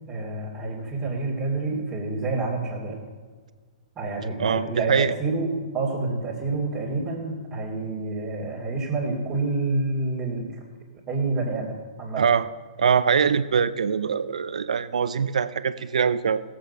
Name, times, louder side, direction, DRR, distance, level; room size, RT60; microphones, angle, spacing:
voice 1, 0.1-3.0 4.0-10.6 11.1-12.2, right 3 dB, 20° right, -7 dB, 2.8 m, -28 dB
voice 2, 4.4-5.1 12.2-12.5 12.8-16.4, right 6 dB, 75° right, 14 dB, 0.6 m, -23 dB
17.0 x 7.9 x 5.5 m, 1.5 s
hypercardioid pair, 125°, 4 cm